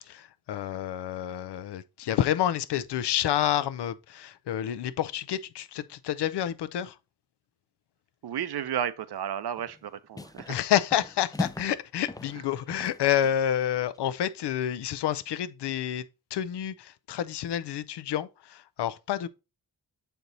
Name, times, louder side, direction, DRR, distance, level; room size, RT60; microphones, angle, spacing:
voice 1, 0.0-7.0 10.5-16.1 16.3-19.3, left 11 dB, 85° left, 0.6 m, -29 dB
voice 2, 8.2-10.6, right 9 dB, 75° right, 0.7 m, -33 dB
sound 1, 9.6-9.8 10.1-10.6 10.9-11.8 12.1-13.5, left 2 dB, 10° left, 0.3 m, -37 dB
6.7 x 4.5 x 3.9 m
cardioid pair, 80°, 39 cm